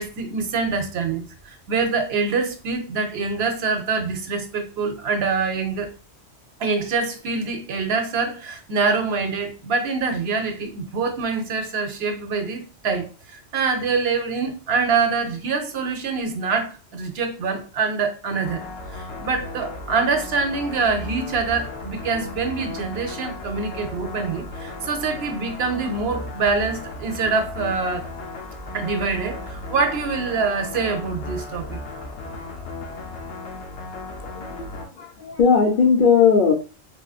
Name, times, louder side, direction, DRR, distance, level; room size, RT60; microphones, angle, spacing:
voice 1, 0.0-5.9 6.6-18.6 18.9-28.1 28.7-31.8, right 4 dB, 70° right, 6 dB, 0.8 m, -25 dB
sound 1, 18.4-34.9, left 2 dB, 90° left, 1.0 m, -35 dB
voice 2, 34.3-36.5, left 6 dB, 55° left, 2 dB, 0.7 m, -18 dB
3.6 x 2.5 x 2.3 m, 0.35 s
omnidirectional pair, 1.1 m